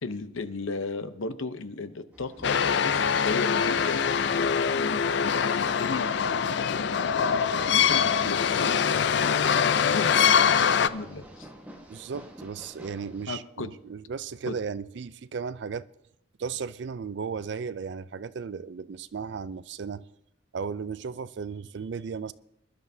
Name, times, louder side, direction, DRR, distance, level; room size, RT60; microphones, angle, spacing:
voice 1, 0.0-6.8 7.6-8.8 9.9-11.5 13.3-13.7 14.5-14.6, left 3 dB, 75° left, 0.8 m, -36 dB
sound 1, 2.1-13.3, right 1 dB, 10° right, 1.4 m, -48 dB
sound 2, 2.4-10.9, left 7 dB, 55° left, 0.4 m, -23 dB
voice 2, 11.9-15.9 16.4-20.1 20.5-22.3, right 5 dB, 55° right, 0.4 m, -35 dB
22.0 x 11.5 x 2.7 m
head